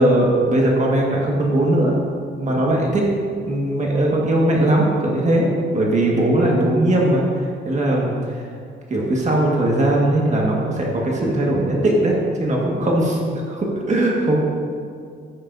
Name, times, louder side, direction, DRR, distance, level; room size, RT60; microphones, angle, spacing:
voice 1, 0.0-2.0 2.4-3.1 3.4-8.5 8.9-13.2 13.5-14.4, right 1 dB, 35° right, -2 dB, 1.6 m, -19 dB
11.0 x 8.6 x 2.6 m, 2.2 s
cardioid pair, 90°, 20 cm